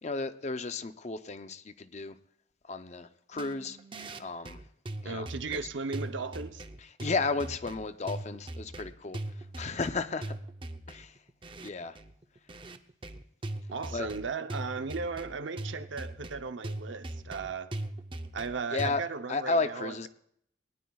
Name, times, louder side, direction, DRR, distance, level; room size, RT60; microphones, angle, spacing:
voice 1, 0.0-2.2 2.7-3.8 4.2-4.6 5.0-5.6 7.0-9.2 9.6-10.3 10.9-11.1 11.6-12.0 13.9-14.1 18.7-19.0 19.3-20.1, left 3 dB, 35° left, 11 dB, 0.6 m, -33 dB
sound 1, 3.3-18.9, right 1 dB, 25° right, 0.6 m, -40 dB
voice 2, 5.0-6.6 13.7-17.7 18.3-20.1, right 4 dB, 75° right, 10 dB, 0.7 m, -36 dB
20.5 x 18.5 x 2.4 m, 0.72 s
head